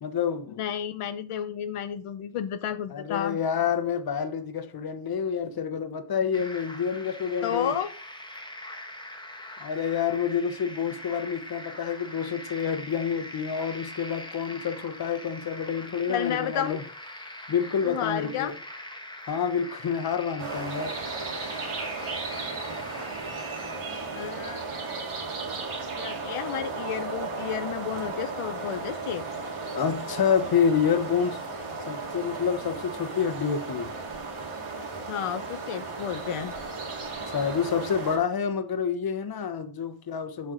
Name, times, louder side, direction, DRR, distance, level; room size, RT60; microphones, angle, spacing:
voice 1, 0.0-0.7 2.9-7.8 9.6-16.8 17.5-18.6 19.3-21.0 29.7-31.4 31.9-33.9 37.3-40.5, left 7 dB, 45° left, 0.9 m, -28 dB
voice 2, 0.6-3.4 7.4-7.9 16.1-16.8 17.9-18.5 24.1-24.7 26.0-29.3 35.1-36.5, left 9 dB, 85° left, 0.7 m, -31 dB
sound 1, 6.3-23.8, left 1 dB, 10° left, 1.2 m, -42 dB
sound 2, 20.4-38.2, right 3 dB, 75° right, 2.3 m, -35 dB
sound 3, 22.0-25.5, right 3 dB, 45° right, 2.1 m, -47 dB
7.6 x 5.7 x 3.8 m
wide cardioid pair, 135°, 50 cm